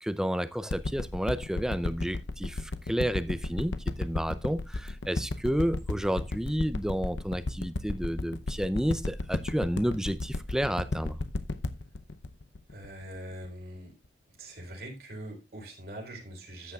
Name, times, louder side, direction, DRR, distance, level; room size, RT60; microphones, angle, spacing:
voice 1, 0.0-11.2, equal, 5° right, 0.5 m, -31 dB
sound 1, 0.7-13.5 14.0-14.1, left 2 dB, 90° left, 0.8 m, -33 dB
voice 2, 12.7-13.9 14.4-16.7, right 1 dB, 60° right, 4.0 m, -43 dB
13.5 x 9.1 x 2.4 m
head